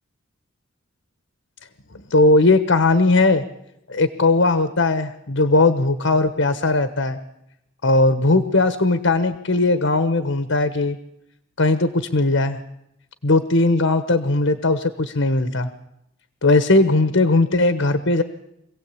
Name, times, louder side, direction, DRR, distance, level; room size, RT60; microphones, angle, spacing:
voice 1, 2.1-3.4 3.9-7.2 7.8-11.0 11.6-12.6 13.2-15.7 16.4-18.2, left 2 dB, 80° left, 10 dB, 1.3 m, -18 dB
25.5 x 16.5 x 8.5 m, 0.84 s
head